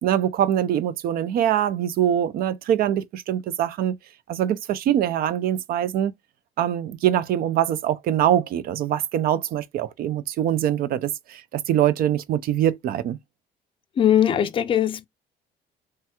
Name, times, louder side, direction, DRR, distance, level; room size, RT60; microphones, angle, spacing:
voice 1, 0.0-4.0 4.3-6.1 6.6-13.2, right 11 dB, 60° right, 0.4 m, -23 dB
voice 2, 14.0-15.1, left 10 dB, 30° left, 0.4 m, -20 dB
3.2 x 2.3 x 2.8 m
cardioid pair, 110°, 17 cm